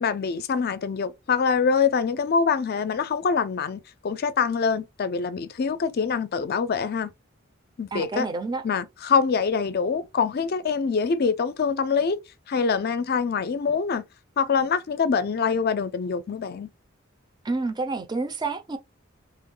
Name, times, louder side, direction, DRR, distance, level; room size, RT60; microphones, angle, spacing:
voice 1, 0.0-7.1 7.8-8.3 8.6-12.2 12.5-14.0 14.4-16.7, left 5 dB, 50° left, 0.4 m, -24 dB
voice 2, 7.9-8.6 17.4-18.8, right 3 dB, 20° right, 0.5 m, -29 dB
3.4 x 2.2 x 3.7 m
head